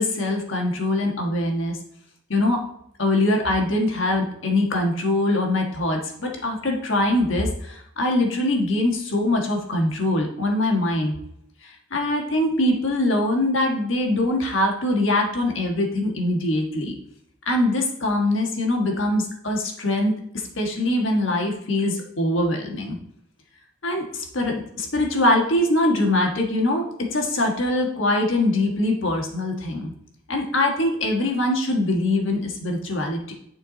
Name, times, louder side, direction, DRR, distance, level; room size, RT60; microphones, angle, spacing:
voice 1, 0.0-1.8 2.3-2.6 3.0-11.1 11.6-16.9 17.4-23.0 23.8-26.9 27.1-29.9 30.3-33.3, left 1 dB, 70° left, 1 dB, 1.4 m, -23 dB
9.9 x 4.5 x 3.9 m, 0.73 s
head